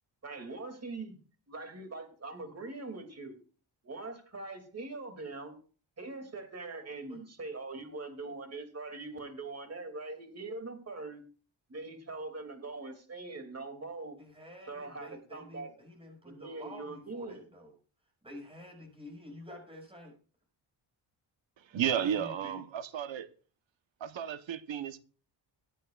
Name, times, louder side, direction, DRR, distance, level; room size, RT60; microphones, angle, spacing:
voice 1, 0.2-1.2 1.5-3.4 3.8-5.5 6.0-11.2 11.7-14.2 14.7-15.7 16.2-17.4, right 3 dB, 30° right, 2.7 m, -42 dB
voice 2, 14.2-17.7 18.2-20.1 21.9-22.6, equal, 10° right, 5.8 m, -49 dB
voice 3, 21.6-23.3 24.0-25.0, right 9 dB, 70° right, 1.1 m, -33 dB
22.5 x 9.2 x 2.5 m
wide cardioid pair, 115°, 47 cm